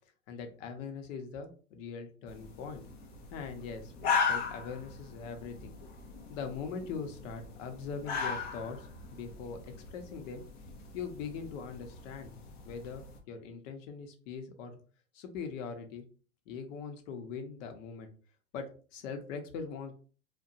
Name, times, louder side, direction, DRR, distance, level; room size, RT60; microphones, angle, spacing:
voice 1, 0.3-2.8 3.3-5.8 6.3-8.9 9.1-10.4 10.9-12.3 12.6-14.7 15.1-16.0 16.5-18.1 18.5-19.9, left 5 dB, 60° left, 6 dB, 0.8 m, -41 dB
sound 1, 2.3-13.2, left 5 dB, 25° left, 0.4 m, -38 dB
2.7 x 2.2 x 2.5 m, 0.39 s
hypercardioid pair, 120°, 44 cm